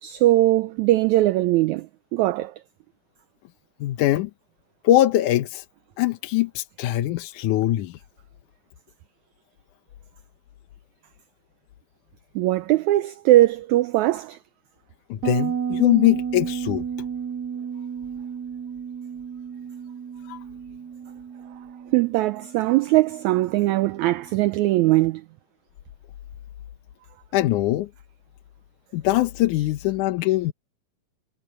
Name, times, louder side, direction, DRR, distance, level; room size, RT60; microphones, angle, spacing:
voice 1, 0.0-1.9 2.1-2.5 12.3-14.4 21.9-25.2, right 16 dB, 80° right, 1.7 m, -20 dB
voice 2, 3.8-4.3 4.8-5.7 6.0-8.0 15.1-16.8 20.3-20.4 27.3-27.9 28.9-30.5, left 15 dB, 75° left, 2.2 m, -22 dB
Bass guitar, 15.2-24.6, right 7 dB, 50° right, 3.2 m, -33 dB
omnidirectional pair, 3.8 m